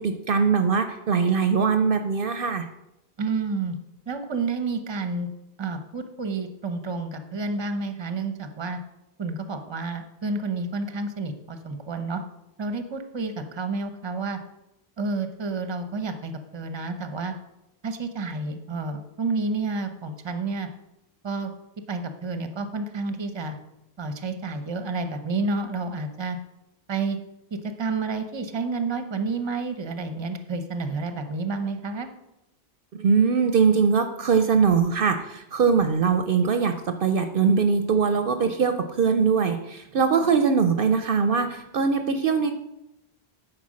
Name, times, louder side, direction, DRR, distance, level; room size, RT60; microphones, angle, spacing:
voice 1, 0.0-2.7 33.0-42.5, right 5 dB, 60° right, 8 dB, 0.8 m, -22 dB
voice 2, 3.2-3.8 4.1-5.3 5.6-8.8 9.2-12.2 12.6-14.4 15.0-17.3 17.8-20.7 21.2-21.5 21.9-23.6 24.0-26.4 26.9-27.2 27.8-32.1, right 3 dB, 30° right, 8 dB, 0.8 m, -30 dB
9.7 x 4.7 x 6.3 m, 0.88 s
omnidirectional pair, 1.1 m